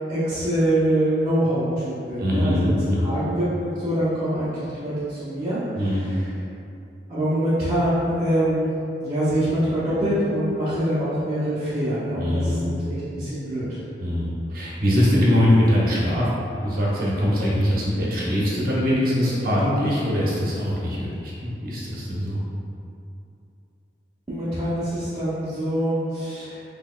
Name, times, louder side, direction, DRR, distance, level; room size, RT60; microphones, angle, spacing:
voice 1, 0.1-5.6 5.9-6.1 7.1-8.7 9.0-13.8 24.3-26.6, right 1 dB, 25° right, -14 dB, 0.6 m, -24 dB
voice 2, 2.2-3.1 5.7-6.1 12.2-12.7 14.0-16.3 16.6-22.4, equal, 55° right, -6 dB, 0.8 m, -22 dB
4.0 x 2.9 x 2.2 m, 2.6 s
head